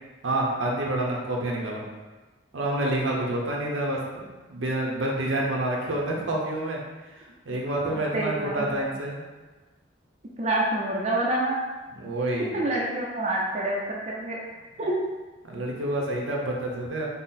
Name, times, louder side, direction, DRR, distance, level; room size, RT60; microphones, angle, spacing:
voice 1, 0.2-1.8 2.5-6.8 7.5-9.2 12.0-12.5 15.4-17.1, right 1 dB, 80° right, -1 dB, 0.7 m, -28 dB
voice 2, 8.0-8.8 10.4-11.6 12.5-14.4 14.8-14.9, right 1 dB, 35° right, -3 dB, 0.4 m, -27 dB
3.8 x 2.0 x 4.0 m, 1.2 s
head